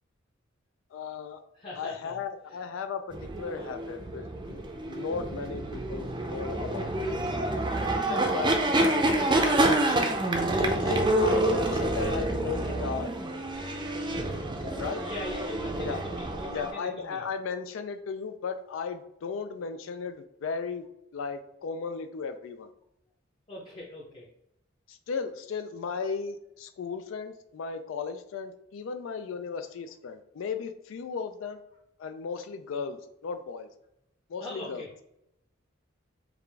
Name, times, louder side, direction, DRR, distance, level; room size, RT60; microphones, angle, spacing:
voice 1, 0.9-1.4 1.8-4.6 4.9-7.2 8.1-10.1 10.5-13.1 14.6-15.0 15.8-16.0 16.5-20.8 21.1-22.7 24.9-31.6 32.0-33.7 34.3-34.8, left 5 dB, 85° left, 9 dB, 0.4 m, -36 dB
voice 2, 1.5-2.2 2.4-2.6 14.8-17.2 23.5-24.2 34.4-34.9, left 1 dB, 25° left, -6 dB, 0.7 m, -41 dB
sound 1, 3.1-16.7, right 1 dB, 25° right, 0.5 m, -28 dB
4.8 x 2.4 x 3.4 m, 0.80 s
head